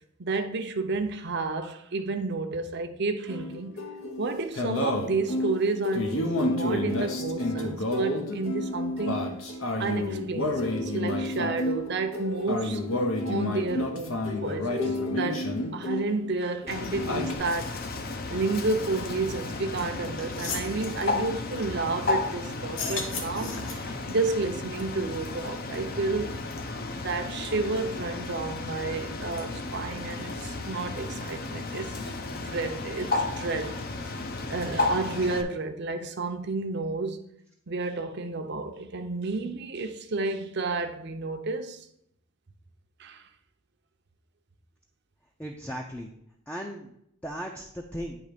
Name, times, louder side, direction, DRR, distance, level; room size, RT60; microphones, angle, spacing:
voice 1, 0.2-3.7 4.2-9.3 9.8-12.8 13.2-17.8 18.3-26.4 27.0-33.8 34.5-37.2 37.7-41.9 43.0-43.3, right 3 dB, 55° right, 0.7 m, -31 dB
sound 1, 3.3-16.4 16.6-17.3, left 1 dB, 85° left, 1.0 m, -30 dB
Bird, 16.7-35.4, left 3 dB, 45° left, 0.6 m, -33 dB
sound 2, 19.8-19.9 20.2-20.7 22.6-24.0, left 4 dB, 65° left, 1.2 m, -35 dB
voice 2, 45.4-46.1 46.5-46.9 47.2-48.2, equal, 5° left, 0.5 m, -36 dB
9.4 x 3.1 x 5.0 m
head